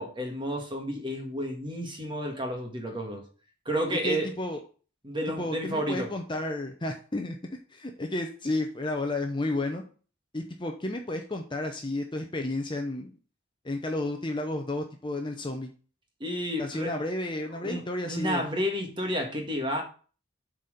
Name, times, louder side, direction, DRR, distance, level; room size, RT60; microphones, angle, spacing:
voice 1, 0.0-3.2 3.6-4.3 5.0-6.1 16.2-16.9 17.6-19.8, equal, 20° right, 3 dB, 1.6 m, -31 dB
voice 2, 4.0-4.6 5.4-7.4 7.7-9.8 10.3-13.1 13.6-15.7 16.6-18.5, left 2 dB, 20° left, 4 dB, 0.7 m, -32 dB
7.6 x 4.3 x 6.5 m, 0.39 s
head